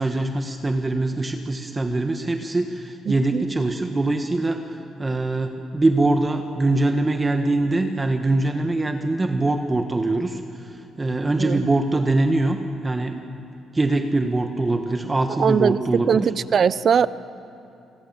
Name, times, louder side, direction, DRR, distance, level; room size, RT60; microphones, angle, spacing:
voice 1, 0.0-12.6 12.8-13.2 13.7-16.3, right 2 dB, 20° right, 6 dB, 1.3 m, -23 dB
voice 2, 3.1-3.4 11.4-11.7 15.4-17.1, right 7 dB, 50° right, 17 dB, 0.7 m, -21 dB
28.5 x 20.5 x 7.5 m, 2.7 s
cardioid pair, 90°, 0 cm